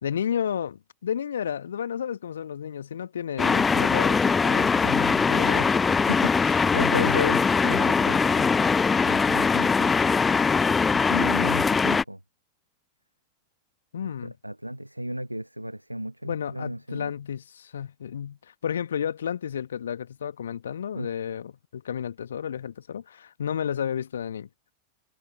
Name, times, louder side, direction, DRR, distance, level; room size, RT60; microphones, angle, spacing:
voice 1, 0.0-7.4 13.9-14.3 16.2-24.5, left 8 dB, 65° left, 1.6 m, -31 dB
sound 1, 3.4-12.0, left 5 dB, 15° left, 0.3 m, -22 dB
voice 2, 6.7-7.3 7.6-8.7 9.0-10.1 10.9-12.2 14.0-17.1 20.9-21.1, right 1 dB, 90° right, 0.9 m, -36 dB
figure-of-eight pair, 90°, 0 cm